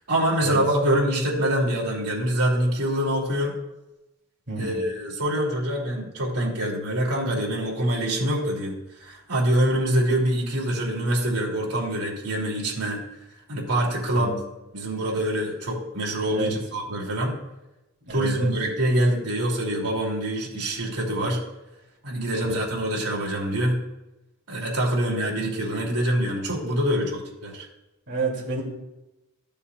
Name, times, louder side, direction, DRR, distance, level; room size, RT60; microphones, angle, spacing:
voice 1, 0.1-3.5 4.6-13.0 13.5-14.3 14.7-17.4 18.1-21.4 22.0-23.8 24.5-27.6, right 1 dB, 85° right, -3 dB, 2.8 m, -25 dB
voice 2, 4.5-4.8 14.1-14.4 16.3-16.5 18.0-18.5 22.4-22.6 28.1-28.6, right 4 dB, 55° right, -2 dB, 2.8 m, -30 dB
14.0 x 6.9 x 2.5 m, 0.97 s
head